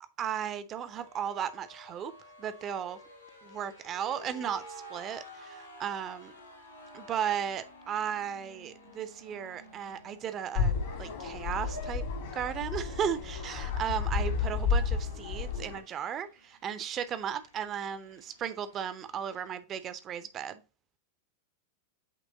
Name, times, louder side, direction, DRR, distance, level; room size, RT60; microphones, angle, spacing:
voice 1, 0.2-2.1 2.4-3.0 3.4-6.3 6.9-12.0 12.3-20.6, right 8 dB, 30° right, 0.7 m, -35 dB
sound 1, 0.8-19.5, left 1 dB, 80° left, 3.0 m, -53 dB
sound 2, 10.6-15.8, left 5 dB, 55° left, 1.6 m, -31 dB
8.4 x 3.4 x 3.9 m
figure-of-eight pair, 90°, 0 cm